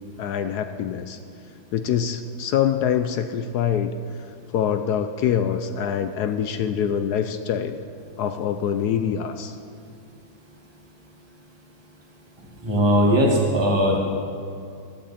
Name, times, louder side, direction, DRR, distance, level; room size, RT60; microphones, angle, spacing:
voice 1, 0.2-1.2 1.7-4.0 4.5-7.8 8.2-9.6, left 8 dB, 70° left, 9 dB, 1.0 m, -24 dB
voice 2, 12.6-14.0, equal, 15° right, -2 dB, 1.9 m, -19 dB
16.0 x 13.5 x 4.2 m, 2.4 s
omnidirectional pair, 2.1 m